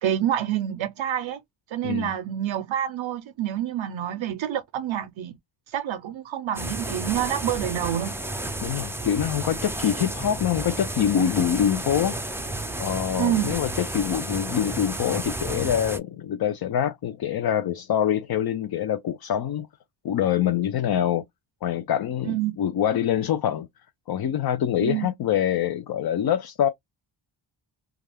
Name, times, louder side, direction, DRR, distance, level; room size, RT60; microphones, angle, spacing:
voice 1, 0.0-1.4 1.7-5.4 5.7-8.1 13.2-13.5 22.2-22.5 24.8-25.1, right 11 dB, 80° right, 0.5 m, -27 dB
voice 2, 1.8-2.1 8.6-12.2 12.8-19.7 20.0-21.2 21.6-23.7 24.1-26.7, left 9 dB, 55° left, 0.5 m, -25 dB
sound 1, 6.5-16.0, right 1 dB, 5° right, 0.4 m, -32 dB
2.4 x 2.2 x 3.3 m
wide cardioid pair, 90°, 46 cm